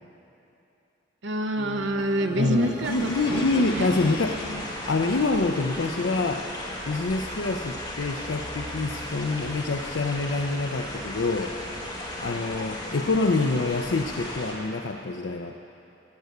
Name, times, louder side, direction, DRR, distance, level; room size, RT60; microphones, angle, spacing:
voice 1, 1.2-3.9, right 1 dB, 75° right, 6 dB, 0.8 m, -27 dB
sound 1, 1.6-5.6, right 1 dB, 35° right, 2.0 m, -40 dB
voice 2, 2.3-4.5 4.9-6.5 6.9-11.6 12.2-15.6, left 3 dB, 75° left, 3 dB, 0.6 m, -26 dB
sound 2, 2.8-14.5, left 1 dB, 20° left, 2.1 m, -36 dB
sound 3, 3.3-7.4, left 3 dB, 55° left, 1.4 m, -42 dB
13.0 x 8.3 x 9.3 m, 2.9 s
head